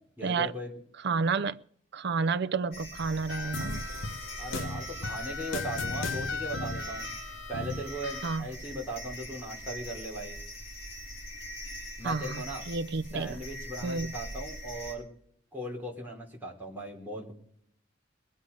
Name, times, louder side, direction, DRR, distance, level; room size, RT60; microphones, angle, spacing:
voice 1, 0.2-0.8 4.4-7.1 7.5-10.4 12.0-12.6 13.1-15.1 15.5-17.3, right 1 dB, 10° right, 3.1 m, -38 dB
voice 2, 1.0-1.6 1.9-3.8 8.2-8.5 12.0-13.4 13.8-14.1, right 4 dB, 60° right, 0.5 m, -30 dB
sound 1, 2.7-14.9, equal, 55° left, 3.8 m, -42 dB
sound 2, 3.3-8.4, left 3 dB, 70° left, 1.1 m, -36 dB
21.0 x 8.9 x 5.2 m
head